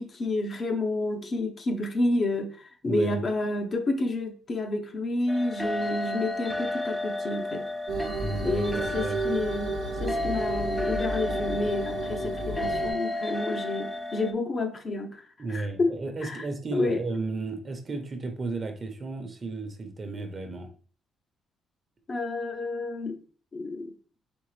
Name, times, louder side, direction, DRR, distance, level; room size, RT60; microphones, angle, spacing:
voice 1, 0.0-7.7 8.4-15.2 15.5-15.9 16.2-16.5 16.7-17.0 22.1-23.2 23.5-23.9, left 2 dB, 40° left, 0.9 m, -30 dB
voice 2, 2.8-3.2 8.2-9.2 15.4-20.7, right 3 dB, 40° right, 0.9 m, -33 dB
sound 1, 5.3-14.3, left 2 dB, 5° left, 0.5 m, -32 dB
sound 2, 7.9-12.9, right 2 dB, 85° right, 0.7 m, -32 dB
4.4 x 3.2 x 3.3 m
cardioid pair, 90°, 0 cm